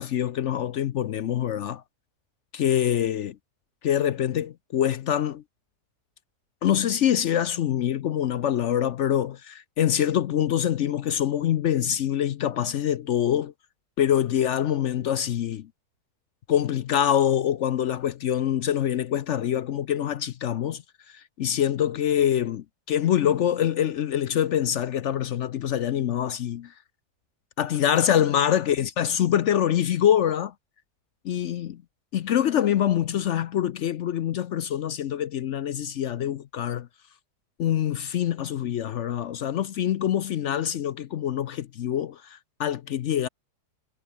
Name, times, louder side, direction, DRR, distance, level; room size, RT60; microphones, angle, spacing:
voice 1, 0.0-1.8 2.5-3.3 3.8-5.4 6.6-13.5 14.0-15.7 16.5-26.7 27.6-30.5 31.2-31.8 32.1-36.9 37.6-43.3, left 10 dB, 65° left, 0.7 m, -25 dB
omnidirectional pair, 1.7 m